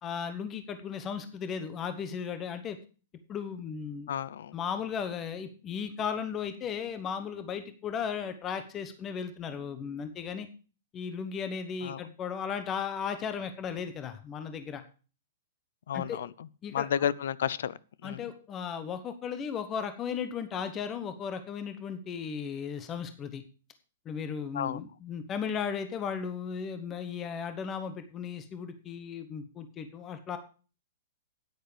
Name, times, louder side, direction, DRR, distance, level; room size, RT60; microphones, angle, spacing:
voice 1, 0.0-2.8 3.3-4.1 4.5-10.5 10.9-14.8 15.9-16.2 16.6-17.1 18.0-23.4 24.0-30.4, left 7 dB, 20° left, 1.0 m, -36 dB
voice 2, 4.1-4.5 11.8-12.0 15.9-16.3 16.7-17.7 18.0-18.2 24.5-24.8, left 9 dB, 65° left, 0.6 m, -31 dB
9.3 x 9.2 x 5.0 m
hypercardioid pair, 165°, 0 cm